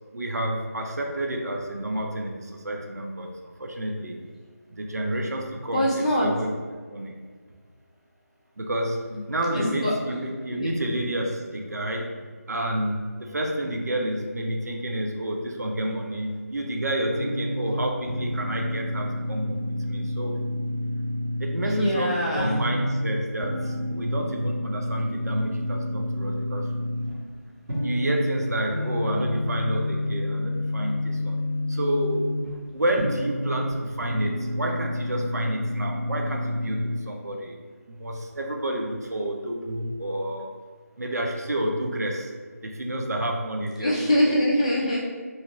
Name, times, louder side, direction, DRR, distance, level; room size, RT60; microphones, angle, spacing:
voice 1, 0.1-3.3 3.6-4.2 4.8-5.9 6.2-6.5 6.9-7.1 8.6-12.2 12.5-20.4 21.4-26.6 27.8-31.4 31.7-32.3 32.7-37.6 37.9-40.5 41.0-42.3 42.6-43.9 44.2-44.4, right 1 dB, 70° right, 1 dB, 0.5 m, -29 dB
voice 2, 5.7-6.3 9.5-9.9 10.6-10.7 21.6-22.6 43.8-45.0, equal, 25° left, -6 dB, 0.5 m, -23 dB
sound 1, 17.1-37.0, left 1 dB, 55° right, 1.1 m, -29 dB
2.8 x 2.3 x 2.9 m, 1.5 s
figure-of-eight pair, 165°, 9 cm